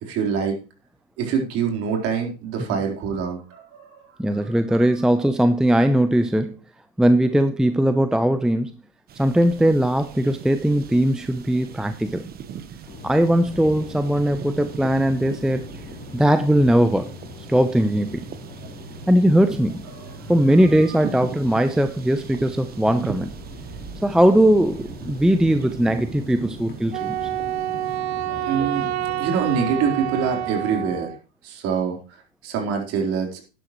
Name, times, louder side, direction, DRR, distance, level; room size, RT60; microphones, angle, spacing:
voice 1, 0.0-0.6 1.2-4.6 20.0-20.3 28.4-28.9 29.2-31.1 31.4-32.0 32.4-33.4, right 6 dB, 45° right, 2 dB, 4.0 m, -25 dB
voice 2, 4.2-6.6 7.0-8.7 9.2-12.3 13.0-15.6 16.1-17.1 17.5-18.2 19.1-19.8 20.3-23.3 24.0-27.2, right 1 dB, ahead, 9 dB, 0.6 m, -19 dB
sound 1, 9.1-28.0, right 7 dB, 30° right, 1.1 m, -39 dB
sound 2, 12.9-31.1, left 3 dB, 30° left, 3.5 m, -41 dB
Wind instrument woodwind instrument, 26.9-31.2, right 14 dB, 85° right, 0.7 m, -28 dB
11.5 x 11.0 x 3.1 m, 0.33 s
hypercardioid pair, 115°, 32 cm